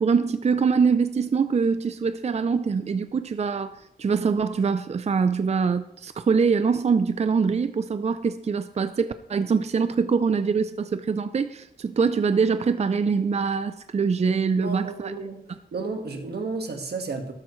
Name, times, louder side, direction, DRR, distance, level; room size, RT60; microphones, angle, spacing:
voice 1, 0.0-14.9, right 5 dB, 40° right, 0.5 m, -24 dB
voice 2, 14.6-17.3, right 3 dB, 85° right, 1.7 m, -32 dB
13.0 x 12.0 x 3.2 m
wide cardioid pair, 110°, 16 cm